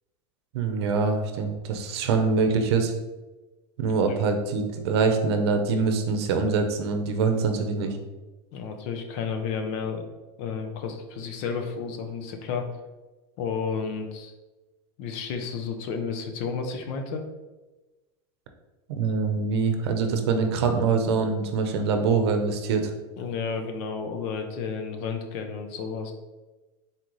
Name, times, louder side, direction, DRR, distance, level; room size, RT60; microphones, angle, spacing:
voice 1, 0.5-2.9 3.8-8.0 18.9-22.9, right 4 dB, 85° right, 6 dB, 0.7 m, -24 dB
voice 2, 8.5-10.1 10.4-12.7 13.4-14.3 15.0-17.2 23.2-26.1, left 5 dB, 45° left, 5 dB, 0.6 m, -32 dB
4.1 x 3.8 x 3.1 m, 1.2 s
supercardioid pair, 170°, 13 cm